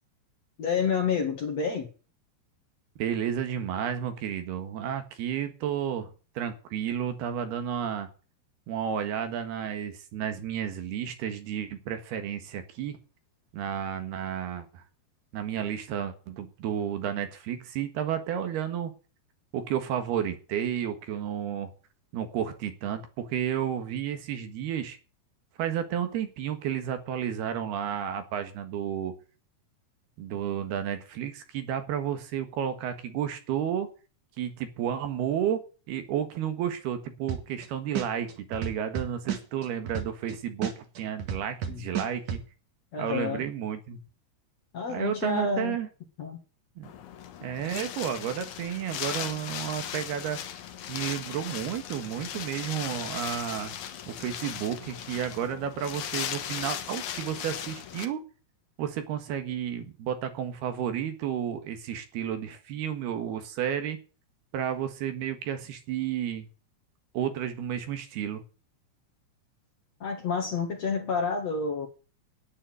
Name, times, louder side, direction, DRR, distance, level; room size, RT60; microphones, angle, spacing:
voice 1, 0.6-1.9 41.7-41.8 42.9-43.4 44.7-45.8 46.2-46.4 70.0-71.9, left 5 dB, 50° left, 2.4 m, -29 dB
voice 2, 3.0-6.1 6.4-8.1 8.7-13.0 13.5-14.8 15.3-18.9 19.5-21.7 22.1-25.0 25.6-29.2 30.2-33.9 34.4-42.4 43.0-44.0 44.9-45.9 46.8-46.9 47.4-50.4 50.9-53.7 54.1-58.2 58.8-64.0 64.5-66.5 67.1-68.4, right 9 dB, 70° right, 3.4 m, -32 dB
sound 1, 37.3-37.6 37.9-40.3 40.6-42.4, right 8 dB, 50° right, 3.0 m, -32 dB
Wind, 46.8-58.0, left 10 dB, 65° left, 2.1 m, -37 dB
11.0 x 9.9 x 7.7 m
omnidirectional pair, 5.0 m